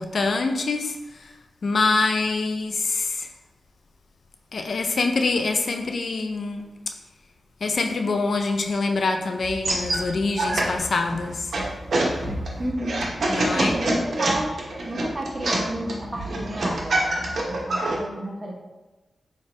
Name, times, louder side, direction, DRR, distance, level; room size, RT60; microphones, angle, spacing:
voice 1, 0.0-1.3 1.6-3.3 4.5-6.7 7.6-11.5 13.3-13.7, left 3 dB, 65° left, 5 dB, 0.3 m, -25 dB
sound 1, 9.4-18.0, right 1 dB, 65° right, 0.7 m, -26 dB
voice 2, 12.6-13.0 13.5-14.5 14.8-18.5, right 1 dB, 25° right, -2 dB, 1.1 m, -31 dB
2.9 x 2.8 x 4.2 m, 1.1 s
cardioid pair, 40°, 0 cm